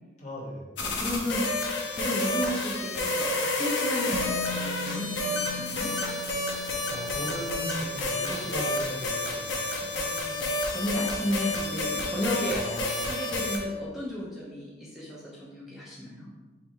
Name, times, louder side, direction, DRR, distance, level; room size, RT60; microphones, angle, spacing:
voice 1, 0.2-0.7 6.9-9.5 12.5-13.2, left 1 dB, 40° left, -4 dB, 1.0 m, -37 dB
sound 1, 0.8-13.6, left 2 dB, 75° left, 0.7 m, -30 dB
voice 2, 0.8-5.9 9.8-10.4 10.7-16.3, equal, ahead, -7 dB, 0.6 m, -34 dB
Musical instrument, 4.1-12.0 12.3-12.5, left 2 dB, 70° right, 0.5 m, -43 dB
3.3 x 3.2 x 4.5 m, 1.3 s
head